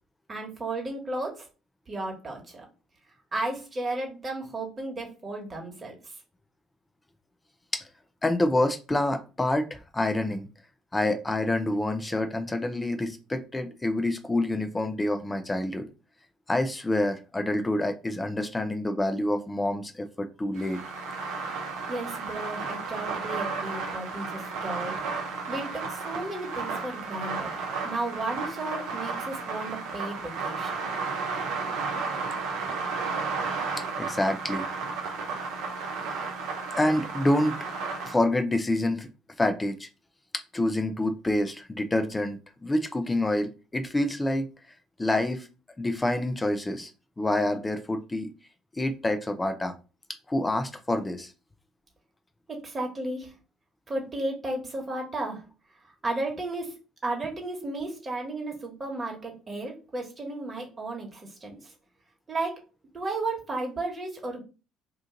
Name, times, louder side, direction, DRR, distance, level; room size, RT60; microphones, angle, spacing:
voice 1, 0.3-1.4 1.9-2.6 3.3-6.1 21.9-25.0 25.2-27.5 27.8-30.8 52.5-53.3 53.9-55.4 55.8-56.8 57.0-61.7 62.3-62.6 62.9-64.4, right 2 dB, 30° right, 1 dB, 1.4 m, -34 dB
voice 2, 8.2-10.5 10.9-15.9 16.5-20.8 34.0-34.7 36.8-37.5 38.0-39.1 39.4-39.9 40.5-44.5 45.0-45.5 45.8-46.9 47.2-48.3 48.8-49.7 50.3-51.3, left 1 dB, 20° left, 7 dB, 0.6 m, -27 dB
sound 1, 20.6-38.1, right 4 dB, 70° right, 0.7 m, -33 dB
2.9 x 2.5 x 3.7 m, 0.32 s
hypercardioid pair, 60°, 0 cm